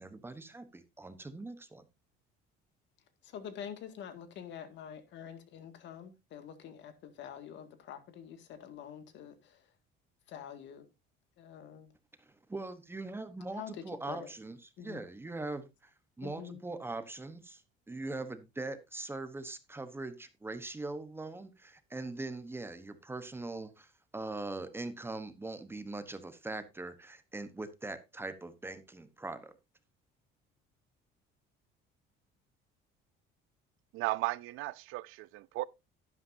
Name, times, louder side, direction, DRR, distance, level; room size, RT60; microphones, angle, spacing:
voice 1, 0.0-1.8 12.3-15.9 16.2-17.6 17.9-29.5, right 2 dB, 10° right, 1.0 m, -41 dB
voice 2, 3.2-9.6 10.3-10.9 11.4-11.9 13.5-14.3 14.8-15.0 16.2-16.6, left 8 dB, 60° left, 2.1 m, -46 dB
voice 3, 33.9-35.7, right 19 dB, 75° right, 0.6 m, -35 dB
11.0 x 11.0 x 2.7 m
cardioid pair, 140°, 21 cm